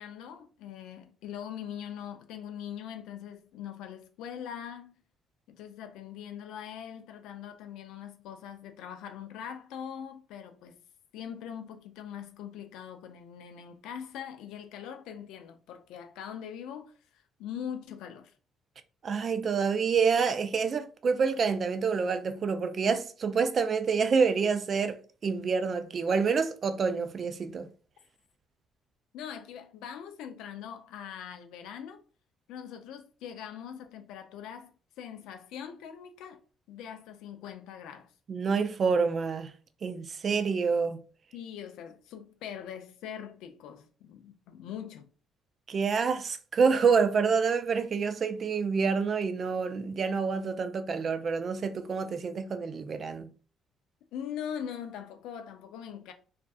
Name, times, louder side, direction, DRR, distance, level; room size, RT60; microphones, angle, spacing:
voice 1, 0.0-4.9 5.5-10.8 11.1-16.9 17.4-18.3 29.1-32.0 32.5-36.4 36.7-38.1 41.3-45.1 54.1-56.1, left 9 dB, 80° left, 0.4 m, -42 dB
voice 2, 19.0-27.7 38.3-39.5 39.8-41.0 45.7-53.3, right 5 dB, 50° right, 0.4 m, -27 dB
2.5 x 2.3 x 2.3 m
supercardioid pair, 60°, 0 cm